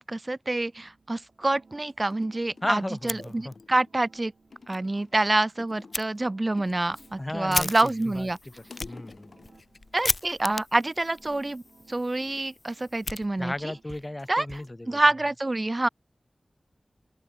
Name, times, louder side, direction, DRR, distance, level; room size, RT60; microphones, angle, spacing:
voice 1, 0.0-4.3 4.7-8.4 9.9-11.6 11.9-13.5 14.3-14.6 14.9-15.9, right 2 dB, 40° right, 1.3 m, -27 dB
sound 1, 0.6-14.7, right 4 dB, 80° right, 4.9 m, -59 dB
sound 2, 2.1-2.9 3.2-3.9 4.5-5.2 5.6-6.1 6.6-8.0 8.3-9.7 11.3-11.7 12.2-13.3 13.6-14.1, left 4 dB, 85° left, 4.3 m, -50 dB
voice 2, 2.6-3.5 7.2-8.3 8.8-9.5 13.4-15.0, left 1 dB, 30° left, 1.3 m, -35 dB
Fire, 2.9-3.8 4.2-4.3 4.7-4.8 5.9-6.1 6.6-13.8, left 3 dB, 60° left, 1.0 m, -36 dB
open air
cardioid pair, 40°, 0 cm